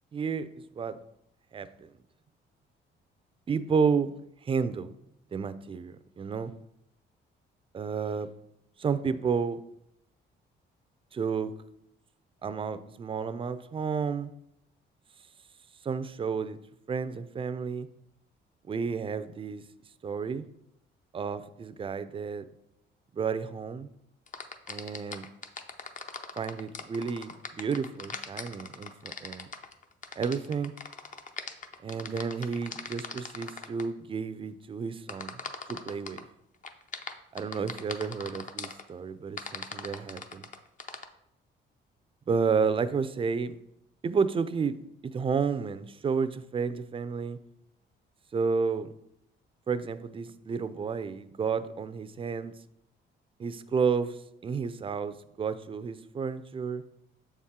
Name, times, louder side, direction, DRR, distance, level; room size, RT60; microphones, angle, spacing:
voice 1, 0.1-1.0 1.5-1.9 3.5-4.1 4.4-4.9 5.3-6.5 7.7-8.3 8.8-9.6 11.1-11.5 12.4-14.3 15.8-16.6 16.9-17.9 18.7-19.6 20.0-20.4 21.1-22.4 23.1-23.9 24.7-25.3 26.4-29.5 30.2-30.7 31.8-35.4 35.7-36.2 37.3-40.5 42.3-43.5 44.0-44.8 45.0-47.4 48.3-48.9 49.7-52.5 53.4-56.8, right 5 dB, 25° right, 13 dB, 0.4 m, -31 dB
sound 1, 24.3-33.8 35.1-36.2 36.6-38.8 39.4-41.0, left 5 dB, 40° left, 0.6 m, -40 dB
7.0 x 4.2 x 3.7 m, 0.80 s
cardioid pair, 90°, 20 cm